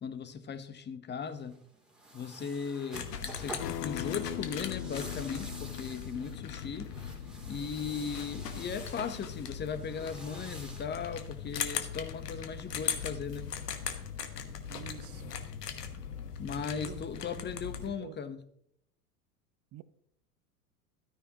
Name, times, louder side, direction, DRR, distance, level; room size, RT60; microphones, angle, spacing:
voice 1, 0.0-1.6 2.1-6.9 7.5-13.5 16.4-18.4, left 6 dB, 20° left, 1.0 m, -38 dB
sound 1, 1.3-12.1, right 1 dB, ahead, 2.8 m, -50 dB
sound 2, 2.9-17.9, left 7 dB, 80° left, 1.3 m, -39 dB
Acoustic guitar, 3.6-8.8, left 18 dB, 45° left, 0.6 m, -43 dB
voice 2, 14.7-15.3 16.5-17.1 17.5-18.2 19.7-19.8, right 13 dB, 30° right, 0.7 m, -48 dB
13.0 x 9.6 x 2.9 m
hypercardioid pair, 85°, 47 cm